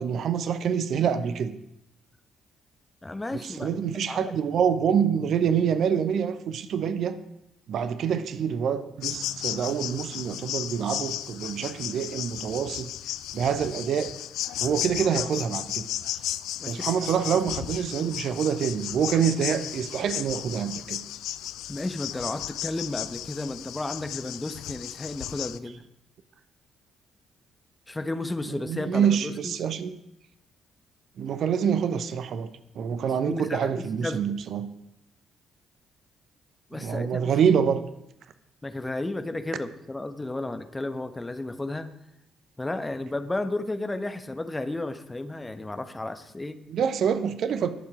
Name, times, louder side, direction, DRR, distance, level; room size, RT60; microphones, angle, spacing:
voice 1, 0.0-1.6 3.4-7.2 7.7-12.9 13.3-14.1 14.6-15.9 16.7-21.0 28.5-29.9 31.2-34.7 36.8-37.9 46.7-47.7, right 7 dB, 55° right, 12 dB, 0.8 m, -26 dB
voice 2, 3.0-3.7 4.1-4.3 16.6-16.8 21.7-25.8 27.9-29.5 33.2-34.2 36.7-37.3 38.6-41.9 42.6-46.6, left 2 dB, 20° left, 9 dB, 1.2 m, -33 dB
sound 1, 9.0-25.6, left 13 dB, 65° left, 0.4 m, -34 dB
20.5 x 7.2 x 4.9 m, 0.82 s
figure-of-eight pair, 40°, 0 cm